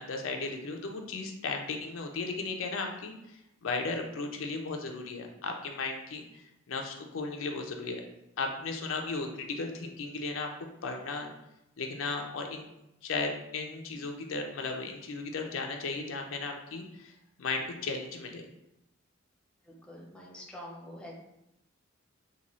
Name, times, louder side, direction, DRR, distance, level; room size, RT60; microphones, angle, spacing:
voice 1, 0.0-8.0 8.4-10.5 10.8-11.3 11.8-12.7 13.0-17.1 17.4-18.5, left 3 dB, 75° left, 3 dB, 0.5 m, -35 dB
voice 2, 19.7-21.1, left 1 dB, 5° left, -3 dB, 0.6 m, -46 dB
3.9 x 2.3 x 3.0 m, 0.87 s
head